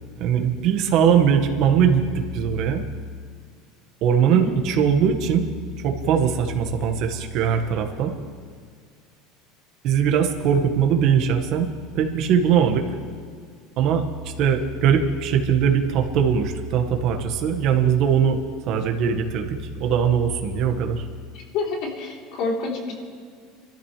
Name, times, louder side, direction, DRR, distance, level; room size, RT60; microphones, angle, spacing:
voice 1, 0.2-2.8 4.0-5.4 5.8-8.1 9.8-11.7 11.9-12.9 13.8-18.4 18.7-21.0, right 7 dB, 50° right, 4 dB, 1.7 m, -21 dB
voice 2, 21.5-22.9, left 3 dB, 55° left, -2 dB, 3.6 m, -27 dB
26.5 x 13.5 x 3.3 m, 2.1 s
supercardioid pair, 140°, 0 cm